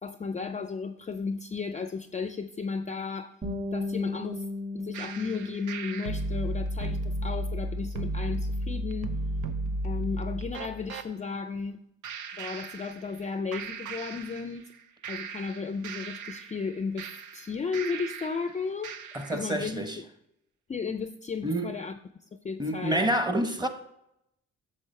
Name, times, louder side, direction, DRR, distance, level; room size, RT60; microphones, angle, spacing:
voice 1, 0.0-3.3 3.7-4.5 4.7-9.2 9.8-11.8 12.4-14.7 15.1-18.9 19.3-20.0 20.7-22.0 22.4-23.0, left 5 dB, 25° left, 0.4 m, -34 dB
Bass guitar, 3.4-9.7, left 2 dB, 30° right, 2.2 m, -39 dB
sound 1, 4.9-11.1 12.0-13.3 13.5-14.7 15.0-18.5 18.8-19.5, right 1 dB, 85° right, 0.7 m, -34 dB
voice 2, 19.1-20.0 21.4-21.7 22.6-23.7, right 1 dB, 15° right, 1.0 m, -28 dB
8.4 x 6.5 x 3.2 m
cardioid pair, 90°, 30 cm